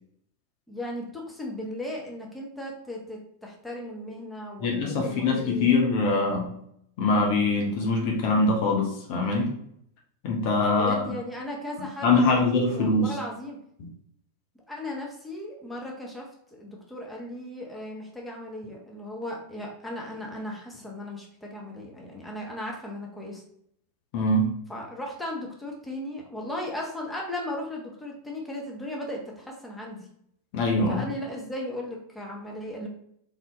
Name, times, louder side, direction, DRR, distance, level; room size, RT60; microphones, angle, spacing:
voice 1, 0.7-5.7 10.7-13.6 14.7-23.4 24.7-30.1 30.9-32.9, left 1 dB, 5° left, -2 dB, 1.2 m, -36 dB
voice 2, 4.6-6.5 7.0-9.5 10.2-10.9 12.0-13.1 24.1-24.5 30.5-31.0, left 2 dB, 45° left, 0 dB, 0.9 m, -23 dB
4.0 x 3.9 x 3.0 m, 0.71 s
figure-of-eight pair, 90°, 0 cm